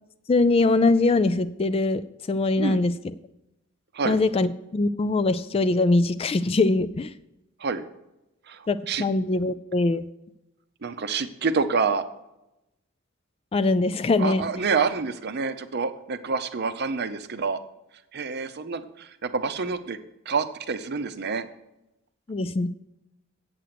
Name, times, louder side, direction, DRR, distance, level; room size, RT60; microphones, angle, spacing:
voice 1, 0.3-2.0 2.3-2.9 4.0-7.1 8.7-10.1 13.5-14.5 22.3-22.7, left 2 dB, 25° left, 14 dB, 0.3 m, -22 dB
voice 2, 8.5-9.0 10.8-12.0 14.2-17.6 18.1-20.0 20.3-21.5, right 4 dB, 50° right, 10 dB, 0.7 m, -27 dB
8.1 x 7.8 x 5.9 m, 0.90 s
head